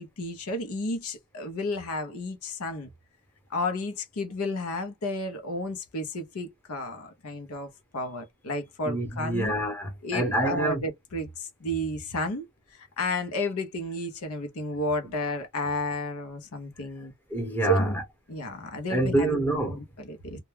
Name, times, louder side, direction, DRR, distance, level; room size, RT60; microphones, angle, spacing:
voice 1, 0.0-2.9 3.5-9.5 10.0-17.1 17.7-18.0 18.3-19.4 19.7-20.4, left 1 dB, 85° left, 0.7 m, -32 dB
voice 2, 8.8-10.8 15.0-15.1 17.3-18.0 18.9-19.8 20.3-20.4, right 1 dB, 10° left, 0.9 m, -27 dB
2.2 x 2.1 x 3.1 m
head